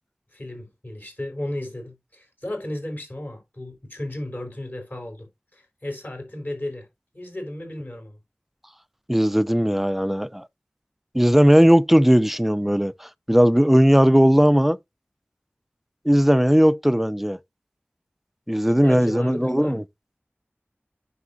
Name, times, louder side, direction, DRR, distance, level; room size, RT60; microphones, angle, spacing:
voice 1, 0.3-6.9 7.1-8.2 18.6-19.8, left 1 dB, 45° left, 4.8 m, -34 dB
voice 2, 9.1-10.5 11.1-14.8 16.1-17.4 18.5-19.8, equal, 5° right, 0.4 m, -18 dB
9.7 x 6.5 x 2.7 m
wide cardioid pair, 50°, 4 cm